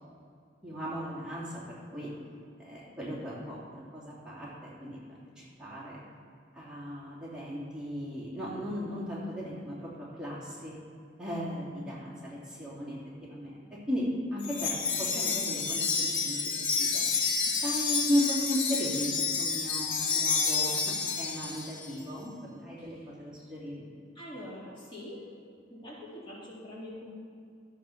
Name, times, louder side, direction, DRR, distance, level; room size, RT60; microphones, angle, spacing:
voice 1, 0.6-2.1 2.6-5.0 5.4-6.0 6.5-10.7 11.2-17.0 17.5-23.9, equal, 5° right, -8 dB, 2.8 m, -36 dB
Wind chime, 14.4-21.9, left 5 dB, 90° left, 1.4 m, -29 dB
voice 2, 24.1-25.2 25.7-27.1, left 1 dB, 30° left, -6 dB, 3.1 m, -44 dB
12.5 x 8.2 x 5.9 m, 2.4 s
head